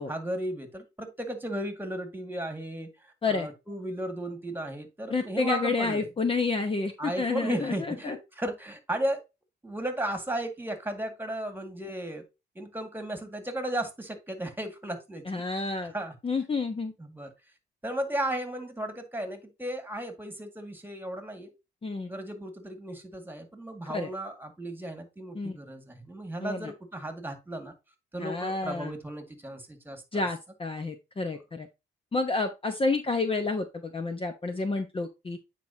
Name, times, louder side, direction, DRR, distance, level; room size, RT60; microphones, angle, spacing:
voice 1, 0.1-6.1 7.0-9.2 9.6-12.2 12.6-15.7 15.9-16.2 17.0-17.3 17.8-21.5 22.1-27.7 28.1-30.3, right 1 dB, 10° right, 2.0 m, -35 dB
voice 2, 5.1-8.2 15.3-15.9 16.2-16.9 21.8-22.1 23.9-24.1 25.3-25.6 26.4-26.7 28.2-28.9 30.1-31.7 32.1-35.4, left 3 dB, 25° left, 0.9 m, -29 dB
9.4 x 4.6 x 2.8 m
cardioid pair, 90°, 20 cm